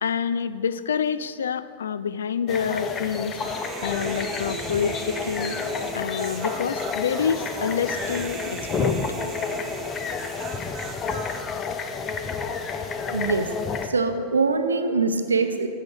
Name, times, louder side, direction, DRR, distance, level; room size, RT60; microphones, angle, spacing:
voice 1, 0.0-5.6 5.9-9.0, left 7 dB, 65° left, 14 dB, 0.3 m, -27 dB
sound 1, 2.5-13.9, left 5 dB, 25° left, 0.6 m, -30 dB
Human voice, 3.4-11.4, right 8 dB, 30° right, 0.5 m, -38 dB
voice 2, 13.1-13.5 13.8-15.7, right 4 dB, 75° right, 8 dB, 0.7 m, -23 dB
14.5 x 7.5 x 3.1 m, 2.2 s
figure-of-eight pair, 90°, 0 cm